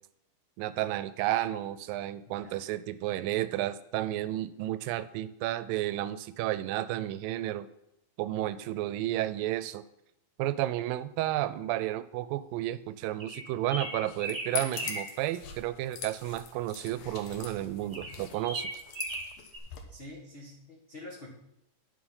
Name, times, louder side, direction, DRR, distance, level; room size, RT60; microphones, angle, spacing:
voice 1, 0.6-7.7 8.2-9.8 10.4-18.8, right 14 dB, 90° right, 14 dB, 2.3 m, -32 dB
voice 2, 2.3-2.6 8.6-8.8 19.9-21.3, left 2 dB, 65° left, -4 dB, 0.5 m, -47 dB
sound 1, 13.2-15.1 17.9-19.6, right 1 dB, 35° right, 0.8 m, -37 dB
sound 2, 13.9-19.8, left 7 dB, 80° left, 2.7 m, -42 dB
9.5 x 6.5 x 5.5 m, 0.83 s
omnidirectional pair, 3.9 m